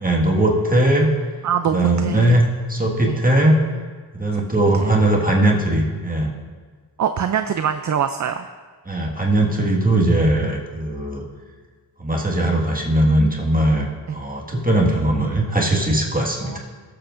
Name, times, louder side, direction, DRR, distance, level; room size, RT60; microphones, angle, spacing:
voice 1, 0.0-1.1 1.7-2.4 2.7-3.5 4.1-6.3 8.9-11.2 12.0-16.6, right 1 dB, 20° right, -2 dB, 1.8 m, -19 dB
voice 2, 1.4-2.4 3.1-3.2 4.8-5.1 7.0-8.5 14.1-14.2 16.4-16.6, right 8 dB, 45° right, 8 dB, 0.4 m, -24 dB
20.0 x 7.8 x 2.6 m, 1.5 s
wide cardioid pair, 85°, 43 cm